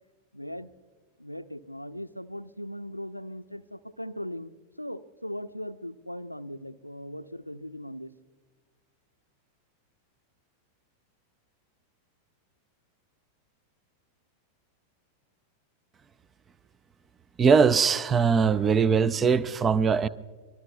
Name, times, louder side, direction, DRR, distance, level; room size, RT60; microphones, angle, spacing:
voice 1, 0.3-0.7 1.2-4.5 4.8-8.1, equal, 90° left, 12 dB, 0.5 m, -39 dB
voice 2, 17.4-20.1, right 6 dB, 20° right, 19 dB, 0.5 m, -21 dB
24.5 x 21.5 x 2.3 m, 1.5 s
figure-of-eight pair, 90°, 0 cm